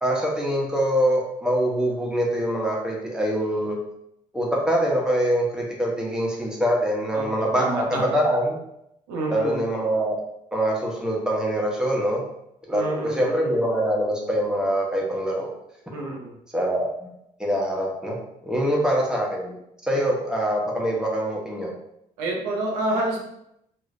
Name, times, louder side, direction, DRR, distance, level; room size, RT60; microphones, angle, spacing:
voice 1, 0.0-3.8 4.3-8.6 9.3-10.2 10.5-12.2 12.7-15.5 16.5-17.1 17.4-18.2 18.4-19.5 19.8-21.7, equal, 5° right, -3 dB, 1.0 m, -24 dB
voice 2, 7.1-8.2 9.1-9.6 12.7-13.6 15.9-16.4 18.5-18.8 19.9-20.0 22.2-23.2, right 1 dB, 70° right, 0 dB, 0.7 m, -29 dB
3.0 x 3.0 x 2.5 m, 0.79 s
figure-of-eight pair, 45°, 21 cm